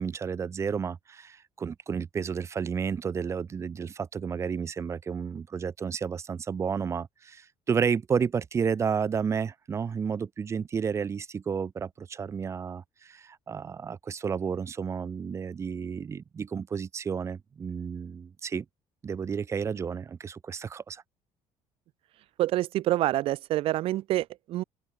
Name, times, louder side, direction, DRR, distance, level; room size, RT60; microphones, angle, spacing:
voice 1, 0.0-18.6 19.0-21.0, right 6 dB, 25° right, 6.1 m, -31 dB
voice 2, 22.4-24.6, right 15 dB, 55° right, 2.4 m, -27 dB
open air
cardioid pair, 170°, 11 cm